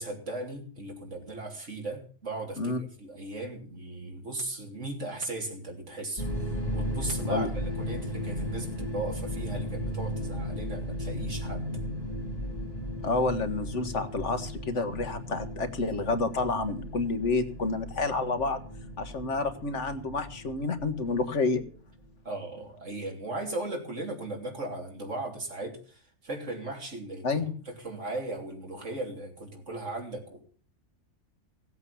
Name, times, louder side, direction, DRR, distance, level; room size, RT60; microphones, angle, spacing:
voice 1, 0.0-6.3 6.7-11.7 22.3-30.4, right 2 dB, 90° right, 1 dB, 3.5 m, -37 dB
sound 1, 6.2-22.0, equal, 30° left, 2.3 m, -35 dB
voice 2, 13.0-18.6 19.0-21.6 27.2-27.5, left 3 dB, 80° left, 8 dB, 1.7 m, -29 dB
16.5 x 8.1 x 7.0 m, 0.43 s
omnidirectional pair, 1.2 m